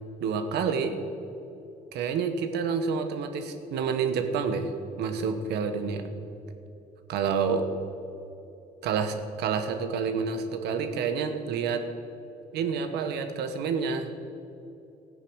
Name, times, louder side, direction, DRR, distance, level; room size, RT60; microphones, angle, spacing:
voice 1, 0.2-1.0 1.9-4.7 5.0-6.1 7.1-7.7 8.8-11.9 12.5-14.1, right 6 dB, 80° right, 8 dB, 1.3 m, -28 dB
14.0 x 9.5 x 6.5 m, 2.9 s
cardioid pair, 110°, 17 cm